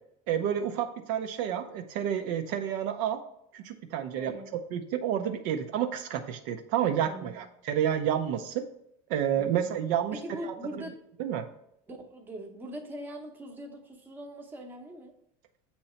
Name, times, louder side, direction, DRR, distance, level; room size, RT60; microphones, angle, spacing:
voice 1, 0.3-3.2 3.5-8.6 9.1-10.5 11.2-11.4, right 9 dB, 65° right, 6 dB, 0.5 m, -30 dB
voice 2, 4.2-4.5 7.0-7.4 9.4-9.7 10.2-10.9 11.9-15.1, equal, 10° right, 2 dB, 0.7 m, -42 dB
7.8 x 2.9 x 4.2 m, 0.75 s
cardioid pair, 160°, 15 cm